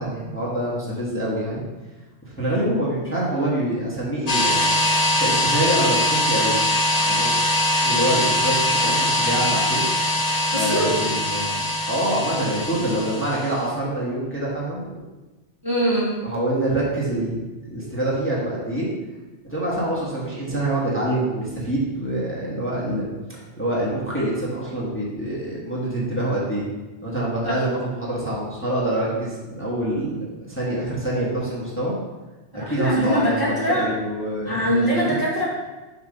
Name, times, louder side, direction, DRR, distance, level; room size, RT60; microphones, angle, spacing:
voice 1, 0.0-1.6 2.2-4.8 5.2-6.6 7.1-7.3 7.8-9.8 10.5-15.0 16.2-17.4 17.7-18.9 19.5-23.1 23.6-26.6 27.0-31.9 32.7-35.2, right 1 dB, 10° left, -7 dB, 1.3 m, -26 dB
sound 1, 4.3-13.6, left 1 dB, 40° left, 0.8 m, -22 dB
voice 2, 10.5-10.9 15.6-16.1 27.4-27.6 32.5-33.8 34.4-35.5, equal, 20° right, -7 dB, 1.2 m, -22 dB
7.1 x 2.9 x 5.1 m, 1.2 s
omnidirectional pair, 1.2 m